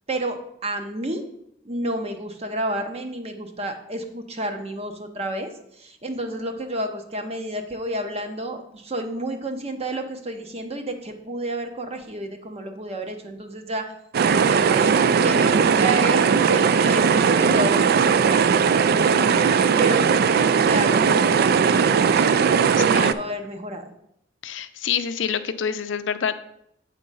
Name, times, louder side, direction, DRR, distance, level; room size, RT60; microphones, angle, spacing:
voice 1, 0.1-1.2 1.7-5.5 5.8-13.8 14.3-14.9 15.2-23.9, right 1 dB, 35° right, 6 dB, 0.9 m, -30 dB
gurgling rapids, 14.1-23.1, right 6 dB, 55° right, 0.3 m, -18 dB
voice 2, 24.4-26.3, left 7 dB, 75° left, 10 dB, 0.5 m, -26 dB
8.3 x 3.8 x 5.5 m, 0.74 s
head